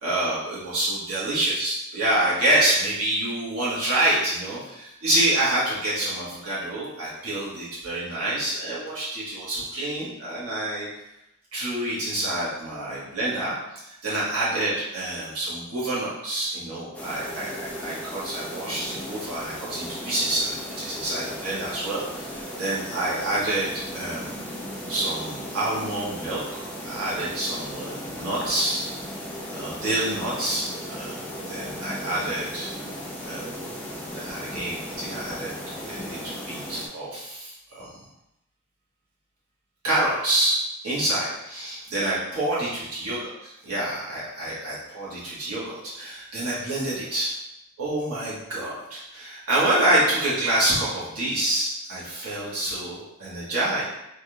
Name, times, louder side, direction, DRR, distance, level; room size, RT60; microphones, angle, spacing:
voice 1, 0.0-10.9 11.5-24.3 24.9-28.8 29.5-31.2 31.5-32.7 33.2-33.6 34.1-35.5 35.9-37.9 39.8-40.6 40.8-47.3 47.8-53.8, right 1 dB, 70° right, -9 dB, 1.3 m, -27 dB
sound 1, 16.9-36.9, equal, 5° left, 0.5 m, -36 dB
3.6 x 3.2 x 2.3 m, 0.86 s
head